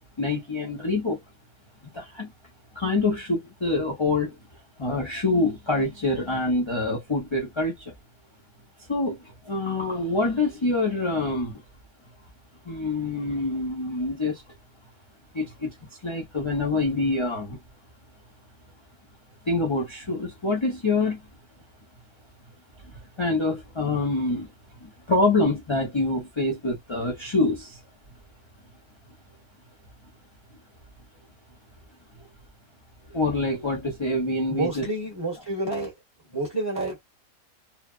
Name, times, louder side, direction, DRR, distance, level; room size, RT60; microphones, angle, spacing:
voice 1, 0.2-1.2 1.9-2.3 2.7-4.4 4.8-7.9 8.9-11.6 12.6-14.4 15.3-15.7 16.0-17.6 19.5-21.2 22.9-24.5 24.8-27.8 33.1-34.9, left 2 dB, 30° left, 0.5 m, -26 dB
voice 2, 34.5-35.9 36.3-37.0, right 2 dB, 15° right, 1.0 m, -29 dB
3.2 x 2.2 x 2.4 m
omnidirectional pair, 1.9 m